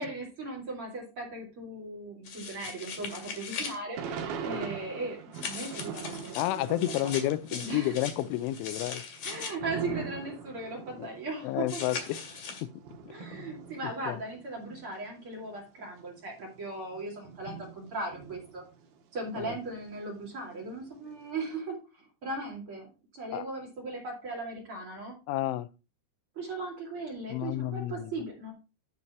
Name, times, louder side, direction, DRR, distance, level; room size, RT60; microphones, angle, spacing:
voice 1, 0.0-4.0 4.4-5.2 5.4-6.7 7.6-8.0 9.2-11.8 13.1-18.6 19.1-22.9 23.1-25.2 26.4-28.5, right 2 dB, 40° right, 2.4 m, -38 dB
sound 1, 2.2-3.8 5.3-9.5 11.7-12.6, left 5 dB, 55° left, 2.5 m, -40 dB
Thunder / Rain, 3.9-7.6 7.9-14.9 15.5-15.6 15.8-19.0 19.4-21.1, right 6 dB, 65° right, 2.7 m, -42 dB
voice 2, 6.4-9.0 11.0-11.1 11.4-12.2 12.6-12.7 13.4-13.5 14.1-14.2 19.4-19.6 23.3-23.4 25.3-25.7 27.3-28.1, left 14 dB, 90° left, 3.0 m, -30 dB
11.5 x 4.2 x 4.3 m
omnidirectional pair, 5.4 m